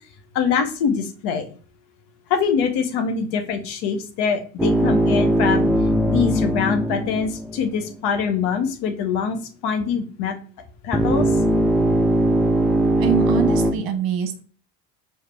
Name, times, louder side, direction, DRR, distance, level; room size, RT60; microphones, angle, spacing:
voice 1, 0.3-1.5 2.3-5.7 6.0-9.4 9.6-10.3 10.8-11.4, left 6 dB, 55° left, 6 dB, 1.0 m, -23 dB
sound 1, 4.6-8.0 10.9-13.7, right 1 dB, ahead, 0.5 m, -20 dB
voice 2, 13.0-14.4, right 6 dB, 45° right, 7 dB, 1.1 m, -23 dB
4.9 x 2.9 x 3.3 m, 0.39 s
hypercardioid pair, 65°, 49 cm